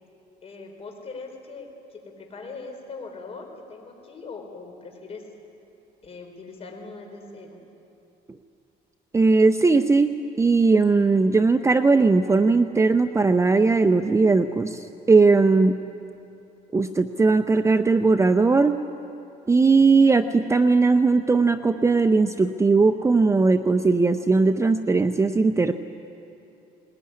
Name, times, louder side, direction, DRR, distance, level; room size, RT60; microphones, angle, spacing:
voice 1, 0.4-5.2 6.0-7.6, left 4 dB, 35° left, 3 dB, 4.5 m, -40 dB
voice 2, 9.1-15.8 16.7-18.8 19.5-25.7, right 3 dB, 15° right, 8 dB, 0.7 m, -19 dB
21.0 x 20.0 x 9.8 m, 2.8 s
cardioid pair, 110°, 17 cm